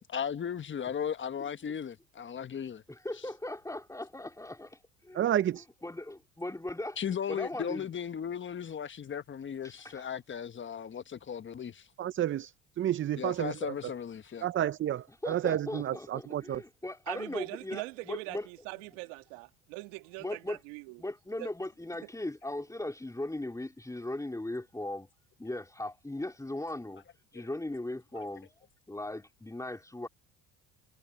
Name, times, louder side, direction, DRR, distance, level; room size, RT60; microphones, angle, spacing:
voice 1, 0.1-2.8 7.0-11.9 13.2-14.5, left 8 dB, 30° left, 1.3 m, -36 dB
voice 2, 2.9-5.3 5.8-7.0 7.3-7.9 9.6-10.1 15.2-18.5 20.2-20.6 21.0-25.1 25.4-27.0 27.3-28.5 28.9-30.1, left 1 dB, 10° left, 3.8 m, -38 dB
voice 3, 5.1-5.7 12.0-13.7 14.4-16.6, right 11 dB, 35° right, 0.5 m, -31 dB
voice 4, 17.1-21.0 21.4-21.5, right 23 dB, 85° right, 2.0 m, -41 dB
supercardioid pair, 85°, 37 cm